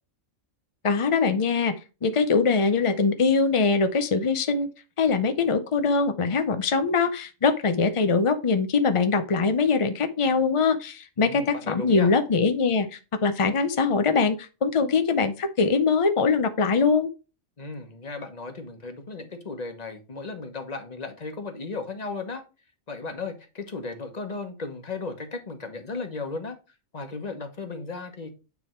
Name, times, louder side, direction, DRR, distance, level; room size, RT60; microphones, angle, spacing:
voice 1, 0.8-1.7 2.0-4.7 5.0-17.1, left 4 dB, 50° left, 0.4 m, -22 dB
voice 2, 11.2-12.1 17.6-22.4 22.9-26.6 26.9-28.3, left 3 dB, 30° left, 1.2 m, -35 dB
9.5 x 3.4 x 4.4 m
omnidirectional pair, 1.4 m